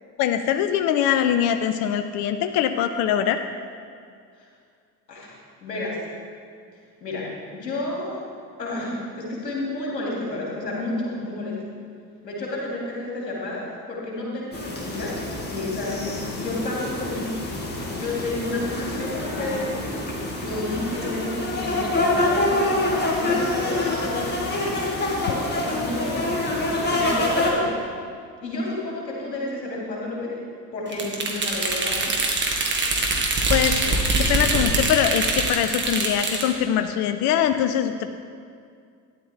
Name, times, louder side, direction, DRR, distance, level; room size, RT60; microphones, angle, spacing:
voice 1, 0.2-3.4 33.5-38.1, left 9 dB, 35° left, 9 dB, 0.6 m, -23 dB
voice 2, 5.6-6.0 7.0-8.2 8.6-11.6 12.2-15.2 15.4-17.4 18.0-19.8 20.3-26.3 26.5-27.7 28.4-30.4 30.7-32.2, left 2 dB, 80° left, -3 dB, 2.5 m, -31 dB
sound 1, 14.5-27.5, left 2 dB, 20° left, 2.3 m, -26 dB
sound 2, 30.9-36.5, right 2 dB, 20° right, 1.9 m, -23 dB
13.0 x 10.5 x 3.5 m, 2.2 s
figure-of-eight pair, 65°, 49 cm